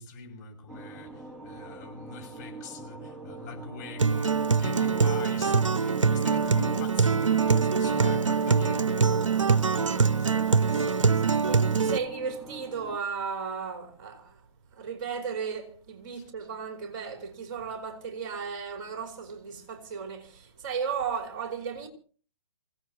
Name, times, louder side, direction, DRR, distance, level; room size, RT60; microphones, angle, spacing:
voice 1, 0.0-12.0 16.1-16.3, left 4 dB, 35° left, 6.7 m, -43 dB
sound 1, 0.7-13.0, right 3 dB, 5° right, 1.2 m, -44 dB
Acoustic guitar, 4.0-12.0, right 5 dB, 90° right, 0.7 m, -24 dB
voice 2, 11.5-14.5 14.7-21.9, right 6 dB, 40° right, 3.2 m, -35 dB
27.5 x 17.0 x 2.8 m
figure-of-eight pair, 135°, 16 cm